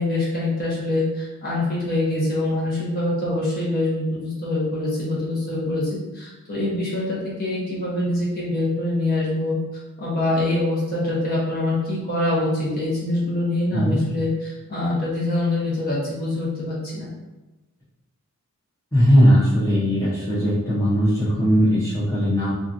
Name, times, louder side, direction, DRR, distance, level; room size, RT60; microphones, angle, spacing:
voice 1, 0.0-9.6 10.0-17.1, left 2 dB, 40° left, -7 dB, 1.0 m, -24 dB
voice 2, 13.7-14.0 18.9-22.5, equal, 15° left, -12 dB, 0.7 m, -18 dB
2.8 x 2.4 x 2.5 m, 1.1 s
head